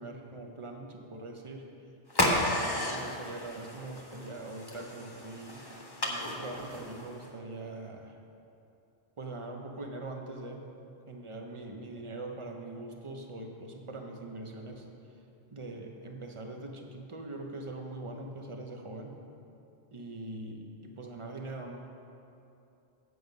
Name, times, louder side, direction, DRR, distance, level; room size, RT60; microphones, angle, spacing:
voice 1, 0.0-1.7 2.2-5.6 6.0-8.2 9.2-10.6 11.1-15.0 15.5-19.1 19.9-21.8, right 2 dB, 30° right, 2 dB, 0.8 m, -42 dB
sound 1, 2.1-7.3, left 1 dB, 25° left, 0.9 m, -33 dB
7.9 x 7.8 x 5.2 m, 2.7 s
omnidirectional pair, 1.1 m